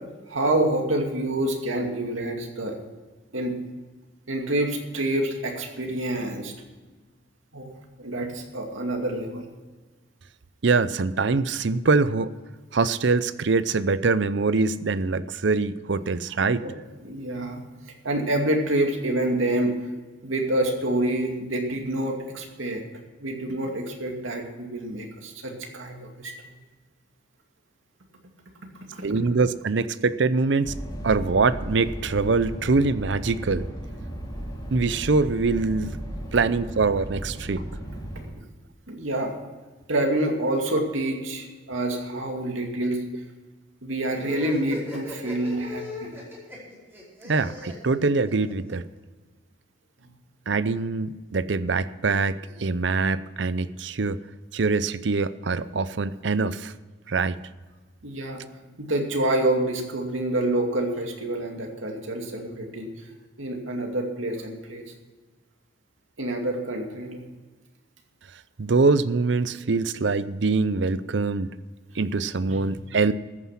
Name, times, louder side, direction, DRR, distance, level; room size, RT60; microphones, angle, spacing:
voice 1, 0.3-2.8 3.3-3.6 4.3-6.5 7.5-7.7 8.0-9.5 16.6-16.7 17.0-17.6 18.0-19.8 20.2-22.8 23.2-26.3 38.9-39.3 39.9-43.0 43.8-46.2 58.0-58.4 58.8-62.9 63.4-64.9 66.2-67.2 72.5-72.6, right 1 dB, 90° right, 2 dB, 2.5 m, -27 dB
voice 2, 10.6-12.3 12.7-16.6 29.0-30.7 31.0-33.7 34.7-36.0 36.3-37.6 47.2-48.8 50.5-54.2 54.5-56.7 57.1-57.4 68.6-71.5 72.0-73.1, right 4 dB, 60° right, 15 dB, 0.6 m, -23 dB
sound 1, 30.6-38.3, right 1 dB, 20° left, 5.1 m, -35 dB
sound 2, 44.1-48.7, left 2 dB, 10° right, 4.8 m, -38 dB
14.0 x 9.6 x 5.8 m, 1.3 s
head